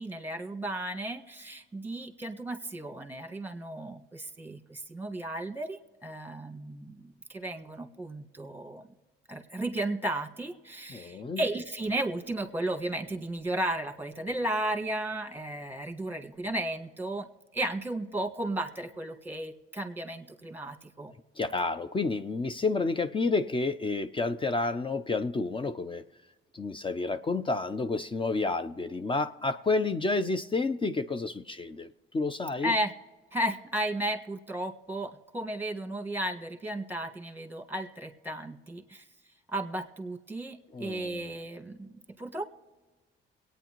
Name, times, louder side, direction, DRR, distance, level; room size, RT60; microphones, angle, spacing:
voice 1, 0.0-8.9 9.3-17.3 17.5-21.1 32.6-32.9 33.3-39.0 39.5-42.5, right 1 dB, 10° right, 5 dB, 1.4 m, -34 dB
voice 2, 10.9-11.4 21.4-26.0 26.5-31.9 32.1-32.7 40.7-41.3, left 3 dB, 25° left, 11 dB, 0.5 m, -30 dB
22.5 x 9.1 x 3.0 m, 1.2 s
cardioid pair, 90°, 20 cm